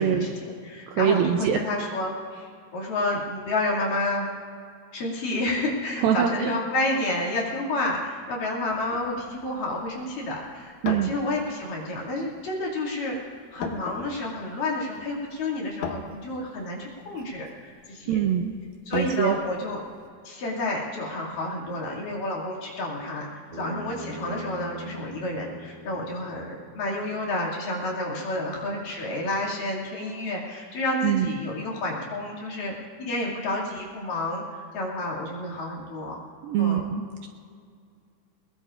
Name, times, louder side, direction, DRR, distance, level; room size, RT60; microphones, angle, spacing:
voice 1, 0.0-4.3 4.9-18.2 18.9-19.8 20.2-23.3 23.5-36.2 36.6-36.9, left 2 dB, 60° left, -4 dB, 4.0 m, -30 dB
voice 2, 0.9-1.6 6.0-6.5 10.8-11.1 18.1-18.5 18.9-19.4 31.0-31.3 36.4-37.3, right 9 dB, 80° right, 5 dB, 2.2 m, -24 dB
sound 1, 8.7-20.1, left 6 dB, 80° left, 1.6 m, -42 dB
Bass guitar, 23.5-27.8, right 1 dB, 45° right, 4.2 m, -43 dB
22.0 x 21.5 x 2.5 m, 2.2 s
omnidirectional pair, 4.7 m